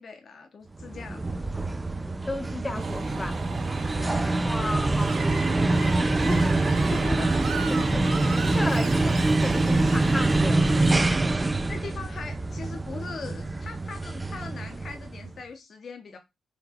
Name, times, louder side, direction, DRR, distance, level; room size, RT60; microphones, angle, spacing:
voice 1, 0.0-1.3 4.0-4.5 6.9-8.0 8.9-9.0 11.5-16.2, left 4 dB, 55° left, 0.9 m, -40 dB
sound 1, 0.8-15.3, right 2 dB, 25° right, 0.4 m, -25 dB
voice 2, 2.3-3.4 4.4-6.6 7.7-8.0 8.4-11.1, left 2 dB, 20° left, 0.7 m, -34 dB
sound 2, 2.7-10.5, right 5 dB, 55° right, 0.7 m, -39 dB
Screech, 5.0-11.0, right 5 dB, 80° right, 1.0 m, -38 dB
4.1 x 2.7 x 4.2 m
supercardioid pair, 60°, 0 cm